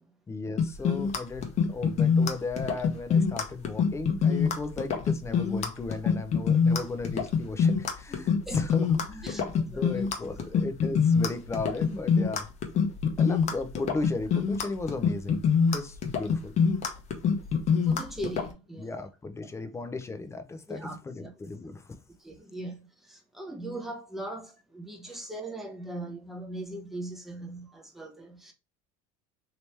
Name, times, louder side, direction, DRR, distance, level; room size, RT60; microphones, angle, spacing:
voice 1, 0.3-12.5 13.2-15.4 15.7-16.5 18.8-22.0 25.1-25.2, left 3 dB, 15° left, 0.6 m, -36 dB
sound 1, 0.6-18.5, left 6 dB, 45° left, 0.9 m, -25 dB
voice 2, 9.2-9.9 17.8-19.0 19.4-19.5 20.7-21.3 22.2-28.5, right 1 dB, ahead, 1.0 m, -40 dB
3.1 x 2.9 x 3.2 m
supercardioid pair, 105°, 16 cm